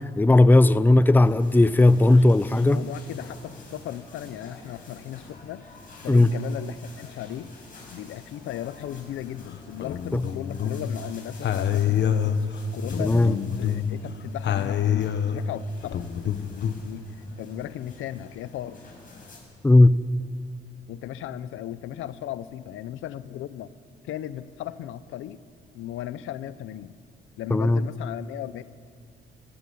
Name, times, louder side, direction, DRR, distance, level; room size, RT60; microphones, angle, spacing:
voice 1, 0.0-2.8 6.1-6.3 10.1-10.2 13.0-13.4 19.6-20.0 27.5-27.8, left 2 dB, 10° left, 16 dB, 0.6 m, -17 dB
sound 1, 1.2-19.4, left 3 dB, 45° left, 7.0 m, -48 dB
voice 2, 2.1-5.7 6.0-7.5 7.9-12.5 12.7-13.3 13.6-16.0 16.8-17.1 17.4-18.8 20.9-23.7 24.0-25.4 25.7-27.0 27.4-28.6, left 12 dB, 85° left, 15 dB, 0.8 m, -36 dB
sound 2, 9.5-11.0 11.4-14.0 14.4-16.8, left 9 dB, 65° left, 1.2 m, -26 dB
18.0 x 15.0 x 9.4 m, 2.2 s
cardioid pair, 90°, 20 cm